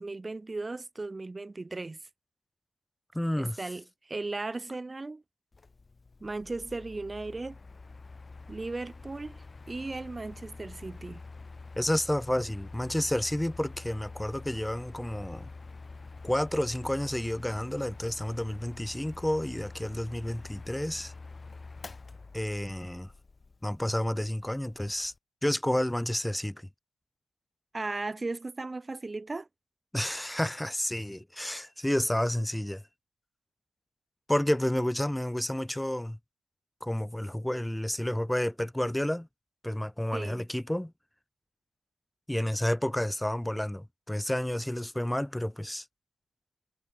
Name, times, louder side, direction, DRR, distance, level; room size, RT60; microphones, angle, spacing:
voice 1, 0.0-2.0 3.4-5.2 6.2-7.6 8.5-11.2 27.7-29.5 40.1-40.5, right 3 dB, 20° right, 1.1 m, -36 dB
voice 2, 3.1-3.6 11.8-15.5 16.2-21.1 22.3-23.1 23.6-25.1 25.4-26.6 29.9-32.8 34.3-36.2 36.8-39.3 39.6-40.9 42.3-45.8, left 1 dB, 5° left, 1.2 m, -30 dB
Mechanical fan, 5.5-25.2, left 3 dB, 25° left, 2.6 m, -47 dB
cardioid pair, 90°, 0 cm